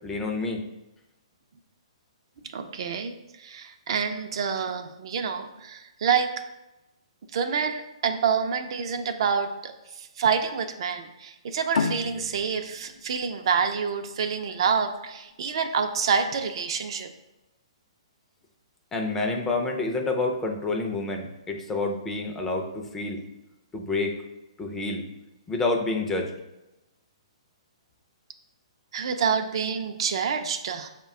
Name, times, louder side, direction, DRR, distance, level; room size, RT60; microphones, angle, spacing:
voice 1, 0.0-0.6 18.9-23.2 23.7-24.2 24.6-25.0 25.5-26.3, left 3 dB, 10° left, 2 dB, 0.4 m, -28 dB
voice 2, 2.5-6.3 7.3-17.1 28.9-30.9, right 6 dB, 55° right, 6 dB, 0.4 m, -27 dB
sound 1, 11.7-14.9, left 4 dB, 70° left, 0.5 m, -32 dB
5.1 x 2.2 x 3.6 m, 0.96 s
hypercardioid pair, 145°, 3 cm